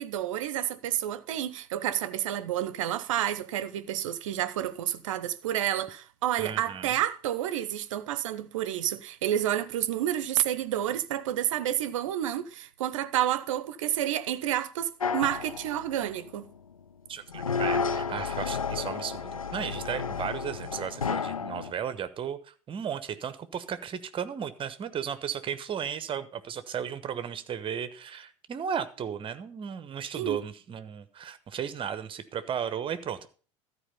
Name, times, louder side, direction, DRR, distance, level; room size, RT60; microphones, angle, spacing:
voice 1, 0.0-16.5 30.2-30.4, right 11 dB, 65° right, 0.7 m, -30 dB
voice 2, 6.4-6.9 17.1-33.3, right 8 dB, 30° right, 1.0 m, -35 dB
sound 1, 15.0-16.3 17.3-21.7, left 5 dB, 85° left, 0.5 m, -32 dB
13.0 x 4.7 x 6.9 m
figure-of-eight pair, 75°, 17 cm